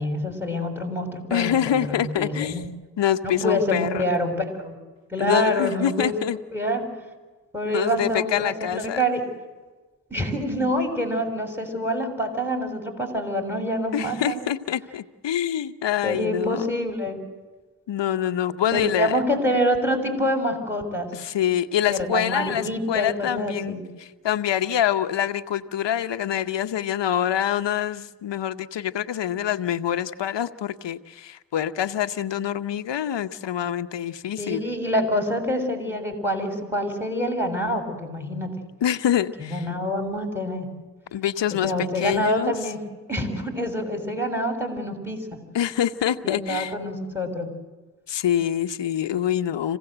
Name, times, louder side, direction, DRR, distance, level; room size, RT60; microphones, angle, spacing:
voice 1, 0.0-2.6 3.2-4.8 5.1-6.2 6.5-6.9 7.5-9.3 10.1-14.4 16.0-17.2 18.7-21.1 21.9-23.8 34.4-38.6 39.4-40.7 41.5-42.8 43.1-45.4 46.2-47.5, equal, 5° right, 5 dB, 7.3 m, -26 dB
voice 2, 1.3-2.6 3.0-4.0 5.2-6.4 7.7-9.0 13.9-16.7 17.9-19.1 21.1-34.6 38.8-39.7 41.1-42.5 45.5-46.7 48.1-49.8, left 10 dB, 85° left, 11 dB, 1.0 m, -25 dB
27.0 x 17.0 x 8.0 m, 1.2 s
cardioid pair, 45°, 42 cm